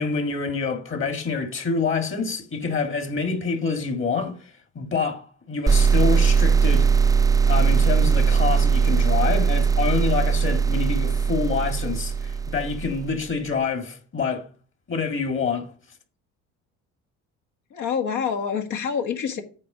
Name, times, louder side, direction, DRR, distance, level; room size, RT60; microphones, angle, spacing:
voice 1, 0.0-6.9 7.5-14.5 14.9-15.7, left 5 dB, 35° left, 2.0 m, -27 dB
sound 1, 5.7-13.2, right 6 dB, 10° right, 0.4 m, -20 dB
voice 2, 17.7-19.4, left 7 dB, 60° left, 1.7 m, -26 dB
8.7 x 4.7 x 6.1 m
cardioid pair, 90°, 33 cm